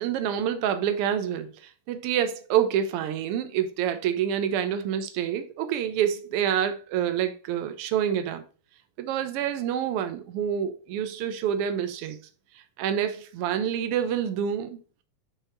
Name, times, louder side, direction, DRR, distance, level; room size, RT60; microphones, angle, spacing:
voice 1, 0.0-8.4 9.0-12.2 12.8-14.8, right 9 dB, 70° right, 1.4 m, -27 dB
8.4 x 3.5 x 4.4 m
omnidirectional pair, 3.4 m